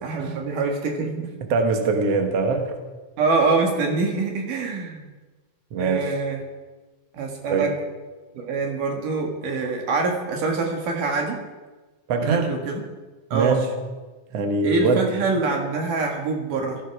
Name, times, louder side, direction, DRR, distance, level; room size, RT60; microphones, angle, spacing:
voice 1, 0.0-1.3 3.2-5.1 5.8-6.4 7.1-7.7 8.4-11.4 12.2-12.8 13.3-13.6 14.6-16.8, right 3 dB, 80° right, 2 dB, 3.6 m, -25 dB
voice 2, 1.5-2.7 5.7-6.2 7.5-7.7 12.1-12.5 13.3-13.7 14.3-15.0, right 4 dB, 55° right, 4 dB, 2.2 m, -22 dB
17.0 x 14.0 x 4.9 m, 1.3 s
omnidirectional pair, 3.7 m